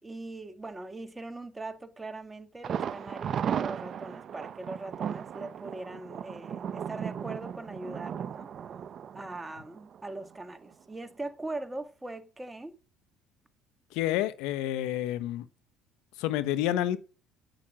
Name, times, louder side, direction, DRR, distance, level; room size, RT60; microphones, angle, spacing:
voice 1, 0.0-8.5 9.1-12.8, right 2 dB, 15° right, 1.7 m, -41 dB
Thunder, 2.6-10.4 10.7-10.8 11.2-11.3, right 8 dB, 50° right, 0.7 m, -36 dB
voice 2, 13.9-15.4 16.2-17.0, left 12 dB, 80° left, 0.9 m, -29 dB
9.0 x 9.0 x 7.5 m
supercardioid pair, 80°, 0 cm